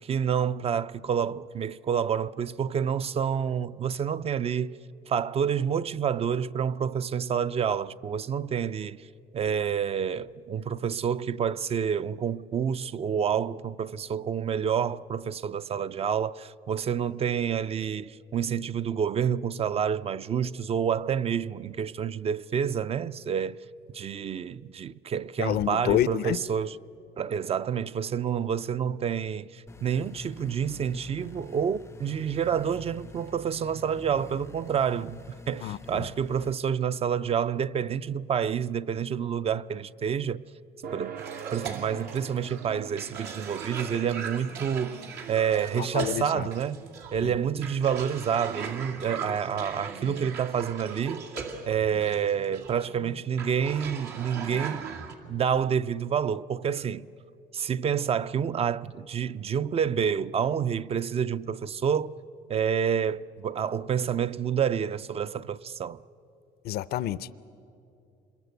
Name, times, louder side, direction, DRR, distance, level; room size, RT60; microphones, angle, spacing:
voice 1, 0.0-4.8 5.1-9.1 9.3-23.6 23.9-26.7 27.2-40.4 40.9-41.1 41.5-45.0 45.3-51.3 51.6-54.9 55.2-57.1 57.5-62.1 62.5-66.0, right 7 dB, 35° right, 0.5 m, -28 dB
voice 2, 25.4-26.4 35.6-36.1 45.8-46.5 47.2-47.3 66.6-67.3, left 12 dB, 70° left, 0.6 m, -28 dB
sound 1, 29.7-36.5, left 4 dB, 15° left, 0.5 m, -46 dB
sound 2, 40.8-55.7, right 7 dB, 60° right, 1.1 m, -49 dB
Cough, 41.2-55.1, right 6 dB, 80° right, 2.4 m, -39 dB
26.5 x 22.0 x 8.1 m
cardioid pair, 110°, 17 cm